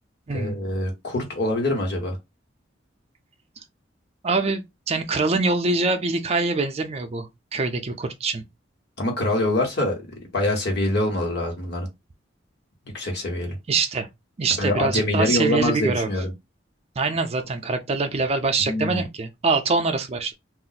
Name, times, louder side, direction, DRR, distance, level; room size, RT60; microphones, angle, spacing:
voice 1, 0.3-2.2 9.0-10.0 10.3-11.9 12.9-13.5 14.6-16.3 18.6-19.0, left 1 dB, 60° left, 1.2 m, -24 dB
voice 2, 4.2-8.4 13.7-14.1 14.4-16.1 17.0-20.3, right 3 dB, 35° right, 0.4 m, -24 dB
2.4 x 2.0 x 3.9 m
head